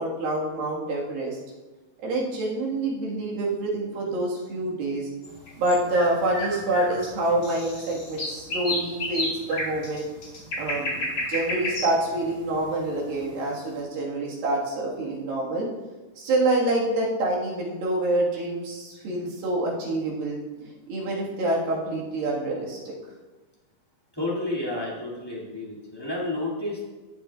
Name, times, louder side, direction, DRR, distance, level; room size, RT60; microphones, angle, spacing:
voice 1, 0.0-1.4 2.0-5.1 5.6-10.1 10.6-15.7 16.2-22.9, right 2 dB, 80° right, -3 dB, 3.6 m, -27 dB
sound 1, 5.2-13.5, left 1 dB, 35° left, 3.0 m, -32 dB
voice 2, 24.1-26.8, left 2 dB, 10° left, -6 dB, 1.6 m, -30 dB
15.0 x 7.7 x 2.4 m, 1.2 s
omnidirectional pair, 4.1 m